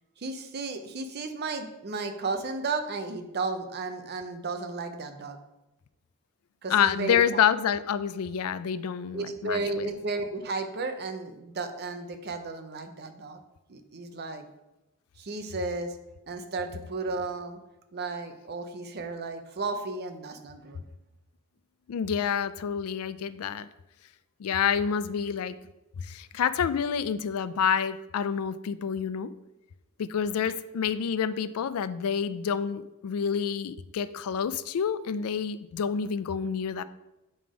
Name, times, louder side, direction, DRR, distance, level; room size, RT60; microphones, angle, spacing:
voice 1, 0.2-5.4 6.6-7.4 9.1-13.4 13.7-14.5 15.2-16.0 16.3-17.6 17.9-20.8, right 3 dB, 45° right, 7 dB, 0.7 m, -34 dB
voice 2, 6.7-9.9 21.9-23.7 24.4-25.5 26.0-29.3 30.0-36.8, left 7 dB, 70° left, 14 dB, 0.4 m, -28 dB
7.6 x 3.7 x 4.9 m, 0.96 s
head